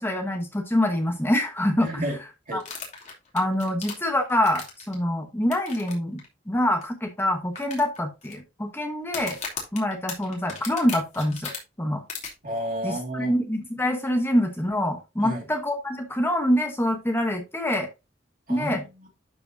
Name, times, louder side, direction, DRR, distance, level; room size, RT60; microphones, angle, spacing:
voice 1, 0.0-1.9 2.5-2.6 3.3-6.2 6.5-9.4 9.7-11.5 11.8-12.0 12.8-17.9 18.5-18.8, left 1 dB, 10° left, 4 dB, 1.1 m, -25 dB
voice 2, 1.8-2.2 2.5-2.6 12.4-13.3 15.2-15.4 18.5-19.1, right 1 dB, 45° right, 0 dB, 2.6 m, -31 dB
sound 1, 2.6-4.9 5.5-5.9 6.2-6.3 6.8-6.9 7.5-8.3 9.0-11.6 12.1-12.3, left 5 dB, 40° left, 2.8 m, -36 dB
11.5 x 5.0 x 2.7 m, 0.26 s
head